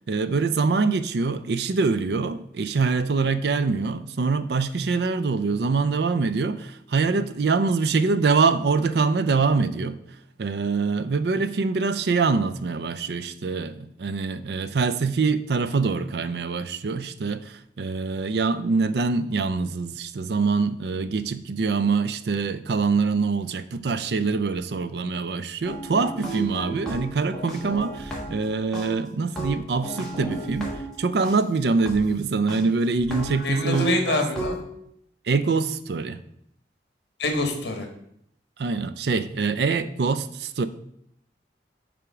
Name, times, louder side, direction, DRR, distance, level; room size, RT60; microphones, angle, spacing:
voice 1, 0.1-10.0 10.4-34.2 35.3-36.2 38.6-40.7, right 4 dB, 65° right, 0.4 m, -24 dB
sound 1, 25.7-28.5 28.7-31.4 31.9-32.0 32.5-32.6 33.0-34.6, right 2 dB, 5° left, 1.5 m, -32 dB
voice 2, 33.4-34.6 37.2-37.9, left 2 dB, 70° left, 1.4 m, -26 dB
6.7 x 3.7 x 5.9 m
head